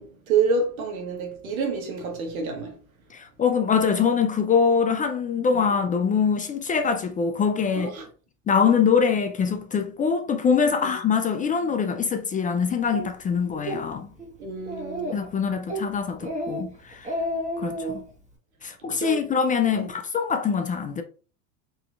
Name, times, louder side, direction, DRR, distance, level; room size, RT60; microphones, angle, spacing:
voice 1, 0.0-2.8 5.5-5.6 7.7-8.1 10.8-10.9 14.4-15.2 18.8-19.3 19.7-19.9, right 5 dB, 90° right, 1.1 m, -28 dB
voice 2, 3.1-7.9 8.5-14.1 15.1-17.1 17.6-18.0 18.6-21.0, left 6 dB, 20° left, 0.3 m, -23 dB
Speech, 12.9-13.1 13.5-13.8 14.2-14.3 14.7-15.3 15.7-15.9 16.2-16.6 16.9-18.0, equal, 15° right, 1.3 m, -30 dB
3.9 x 2.9 x 2.3 m
hypercardioid pair, 80°, 41 cm